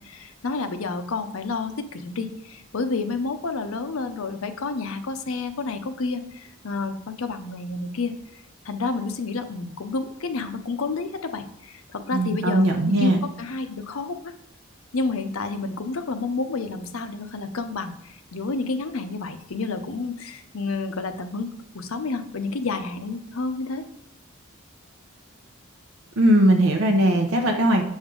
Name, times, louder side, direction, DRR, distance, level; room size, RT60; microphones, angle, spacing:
voice 1, 0.0-8.2 8.6-14.3 14.9-17.9 18.3-21.5 21.7-23.8, left 3 dB, 80° left, 9 dB, 0.6 m, -30 dB
voice 2, 12.1-13.2 26.2-27.8, right 1 dB, 80° right, 2 dB, 0.7 m, -19 dB
7.0 x 5.3 x 3.8 m, 0.77 s
head